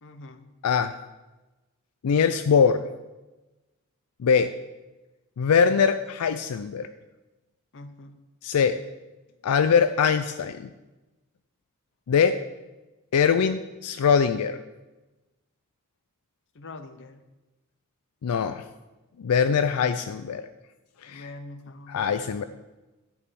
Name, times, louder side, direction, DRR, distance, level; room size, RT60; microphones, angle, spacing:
voice 1, 0.0-0.5 7.7-8.2 16.5-17.2 21.1-22.5, left 2 dB, 60° left, 9 dB, 0.8 m, -44 dB
voice 2, 2.0-2.8 4.2-4.5 5.4-6.9 8.4-8.8 9.4-10.7 12.1-12.4 13.1-14.6 18.2-18.6 19.2-20.4 21.0-21.3 21.9-22.4, left 6 dB, 85° left, 10 dB, 0.4 m, -22 dB
10.0 x 4.8 x 6.9 m, 1.1 s
head